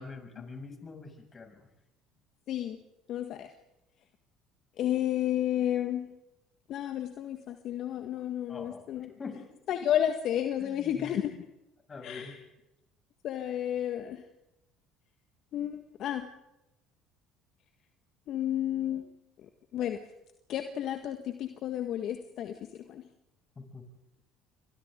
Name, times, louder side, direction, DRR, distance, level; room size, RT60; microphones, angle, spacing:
voice 1, 0.0-1.7 8.5-9.5 10.6-11.1 11.9-12.4 23.6-23.8, left 4 dB, 30° left, 4 dB, 6.9 m, -44 dB
voice 2, 2.5-2.8 3.1-3.5 4.8-6.1 6.7-9.1 9.7-11.5 12.0-12.4 13.2-14.3 15.5-16.3 18.3-19.1 19.4-20.0 20.5-23.0, left 11 dB, 55° left, 7 dB, 1.6 m, -32 dB
29.0 x 24.5 x 3.8 m, 0.88 s
hypercardioid pair, 65°, 0 cm